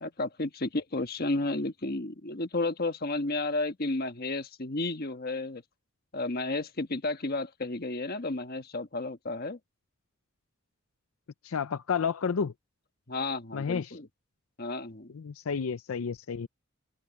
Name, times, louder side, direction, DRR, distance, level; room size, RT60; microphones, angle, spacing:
voice 1, 0.0-5.6 6.1-9.6 13.1-14.1 14.6-15.1, left 2 dB, 45° left, 1.4 m, -32 dB
voice 2, 11.4-12.5 13.5-13.9 15.1-16.5, left 6 dB, 80° left, 0.5 m, -31 dB
head